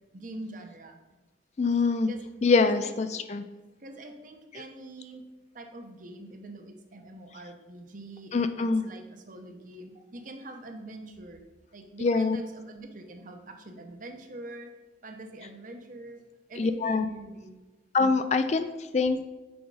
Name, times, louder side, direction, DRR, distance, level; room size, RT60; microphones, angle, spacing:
voice 1, 0.1-1.0 2.1-2.2 2.6-3.1 3.8-5.2 5.5-11.4 11.7-14.7 15.0-16.2 16.5-17.5, right 2 dB, 45° right, 5 dB, 0.8 m, -44 dB
voice 2, 1.6-2.1 2.4-3.4 4.5-4.6 8.3-8.8 12.0-12.4 16.6-17.1 17.9-19.3, left 4 dB, 35° left, 10 dB, 0.3 m, -24 dB
6.2 x 5.0 x 4.8 m, 1.2 s
head